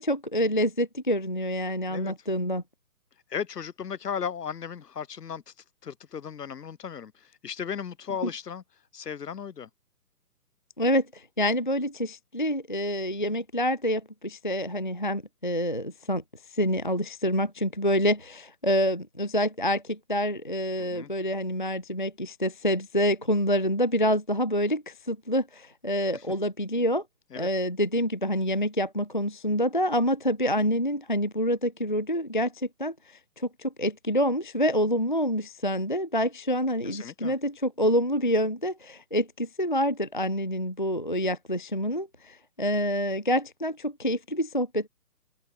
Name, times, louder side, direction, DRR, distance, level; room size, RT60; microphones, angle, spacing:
voice 1, 0.0-2.6 10.8-16.2 16.5-27.0 27.4-44.9, equal, 35° left, 0.5 m, -27 dB
voice 2, 3.3-5.4 5.8-7.1 7.4-8.6 8.9-9.7 20.8-21.1 27.3-27.5 36.8-37.4, left 7 dB, 85° left, 1.1 m, -35 dB
open air
hypercardioid pair, 170°, 47 cm